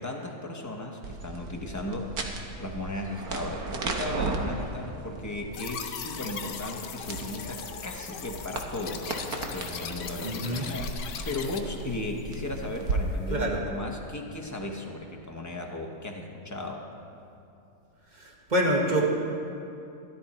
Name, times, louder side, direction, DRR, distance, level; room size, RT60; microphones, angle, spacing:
voice 1, 0.0-9.1 9.5-16.9, left 1 dB, 15° left, 1 dB, 0.8 m, -36 dB
sound 1, 1.0-13.0, right 3 dB, 65° right, 1.5 m, -37 dB
sound 2, 5.5-11.6, left 7 dB, 85° left, 1.4 m, -39 dB
voice 2, 10.2-10.6 13.3-13.6 18.1-19.0, equal, 30° right, -1 dB, 1.5 m, -26 dB
13.5 x 12.5 x 4.3 m, 2.7 s
omnidirectional pair, 1.8 m